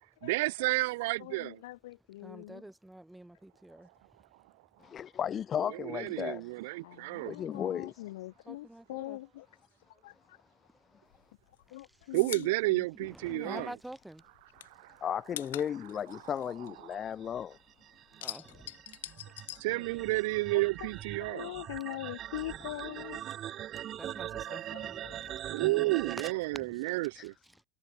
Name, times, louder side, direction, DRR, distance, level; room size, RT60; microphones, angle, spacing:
voice 1, 0.2-1.6 5.9-7.3 12.1-13.7 14.8-15.0 19.6-21.5 25.5-27.3, right 22 dB, 55° right, 1.3 m, -31 dB
voice 2, 1.2-2.6 6.2-6.3 6.8-9.5 10.0-10.4 11.7-13.6 19.3-19.4 20.5-20.9 21.2-23.2 24.5-25.2, left 17 dB, 65° left, 1.3 m, -43 dB
voice 3, 2.2-4.6 7.2-7.4 8.5-9.2 9.9-10.0 10.3-11.3 11.7-12.2 12.9-14.2 18.1-20.1 22.4-22.8 23.3-23.4 23.7-25.5 25.9-27.0 27.4-27.6, right 1 dB, 5° right, 7.6 m, -50 dB
voice 4, 4.8-6.5 7.3-7.9 15.0-17.6 27.1-27.3, left 9 dB, 20° left, 0.4 m, -35 dB
sound 1, 11.1-13.9 14.2-17.5 17.8-20.4 20.7-21.8, left 14 dB, 85° left, 5.9 m, -45 dB
sound 2, 17.0-26.3, right 12 dB, 25° right, 3.3 m, -41 dB
supercardioid pair, 170°, 0 cm